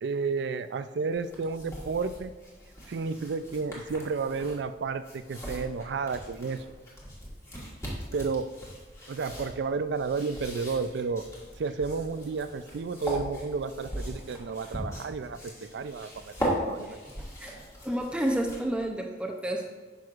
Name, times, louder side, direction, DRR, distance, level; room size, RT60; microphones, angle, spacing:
voice 1, 0.0-2.3 2.9-6.6 8.1-8.5 9.1-11.3 11.6-17.0, right 4 dB, 80° right, 12 dB, 0.4 m, -32 dB
sound 1, 1.1-18.9, right 1 dB, 15° left, 1.5 m, -39 dB
voice 2, 16.9-17.5 17.8-19.7, right 1 dB, 5° right, 2 dB, 0.5 m, -31 dB
9.2 x 6.1 x 2.4 m, 1.4 s
head